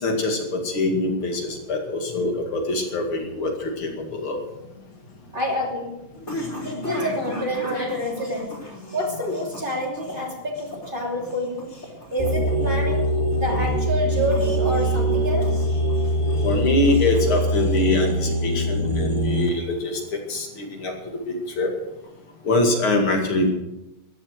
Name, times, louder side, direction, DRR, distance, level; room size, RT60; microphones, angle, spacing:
voice 1, 0.0-4.4 6.4-6.5 6.9-7.0 16.4-20.9 21.3-21.7 22.4-23.5, left 2 dB, 70° left, 2 dB, 3.1 m, -24 dB
sound 1, 4.9-18.5, equal, 35° left, 4.0 m, -37 dB
voice 2, 5.3-5.9 6.6-8.5 8.9-11.7 12.1-15.7, equal, 20° right, -1 dB, 3.1 m, -28 dB
sound 2, 12.2-19.5, right 1 dB, 15° left, 3.4 m, -23 dB
14.0 x 11.5 x 6.4 m, 0.95 s
omnidirectional pair, 2.4 m